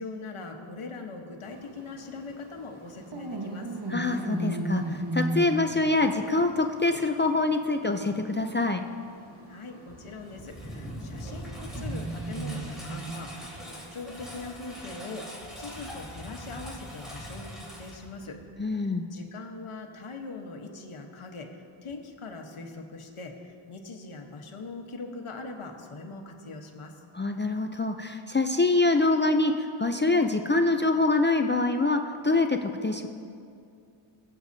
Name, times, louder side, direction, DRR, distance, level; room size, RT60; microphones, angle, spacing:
voice 1, 0.0-3.8 9.5-27.0, left 3 dB, 85° left, 2 dB, 1.2 m, -41 dB
sound 1, 1.4-15.0, right 1 dB, 50° right, 1.3 m, -37 dB
voice 2, 3.9-8.8 18.6-19.1 27.1-33.1, left 3 dB, 25° left, 5 dB, 0.4 m, -25 dB
Engine, 9.9-18.6, equal, ahead, 3.0 m, -41 dB
21.0 x 8.0 x 2.7 m, 2.5 s
wide cardioid pair, 70°, 49 cm